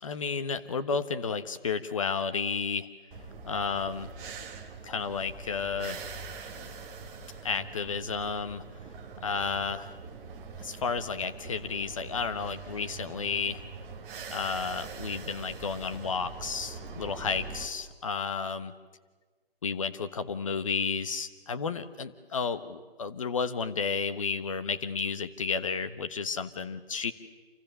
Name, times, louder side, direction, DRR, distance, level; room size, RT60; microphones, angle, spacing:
voice 1, 0.0-2.9 3.4-4.1 4.8-6.0 7.4-8.6 9.2-9.9 10.6-13.6 14.3-18.7 19.6-27.1, left 5 dB, 35° left, 10 dB, 1.4 m, -32 dB
sound 1, 3.1-17.7, right 4 dB, 10° right, 1.3 m, -43 dB
28.5 x 28.0 x 6.9 m, 1.3 s
figure-of-eight pair, 155°, 30 cm